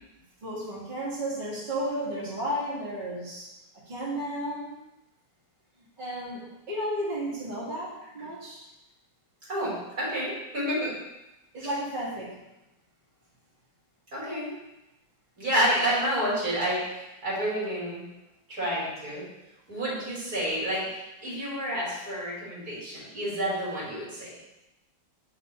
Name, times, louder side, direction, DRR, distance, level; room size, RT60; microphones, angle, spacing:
voice 1, 0.4-3.5 3.9-4.7 6.0-8.6 11.5-12.4, right 1 dB, 25° right, -10 dB, 2.6 m, -33 dB
voice 2, 9.5-11.0 14.1-14.5 15.4-16.8 17.2-18.0 18.5-19.2 19.7-24.3, equal, 55° right, -8 dB, 3.7 m, -29 dB
8.9 x 5.4 x 3.8 m, 0.95 s
omnidirectional pair, 2.0 m